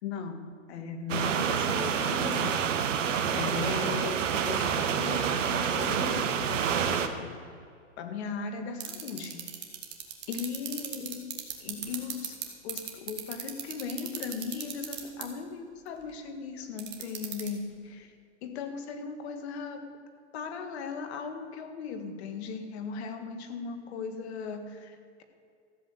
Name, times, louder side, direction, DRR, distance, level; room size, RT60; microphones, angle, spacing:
voice 1, 0.0-2.6 3.4-7.4 8.0-9.4 10.3-11.3 11.6-18.1 18.4-19.9 20.3-25.2, left 5 dB, 55° left, 7 dB, 1.9 m, -38 dB
sound 1, 1.1-7.1, right 7 dB, 75° right, 1.3 m, -28 dB
sound 2, 8.8-12.4 12.7-15.2 16.8-17.5, right 12 dB, 30° right, 1.9 m, -34 dB
14.0 x 7.5 x 8.0 m, 2.3 s
hypercardioid pair, 130°, 37 cm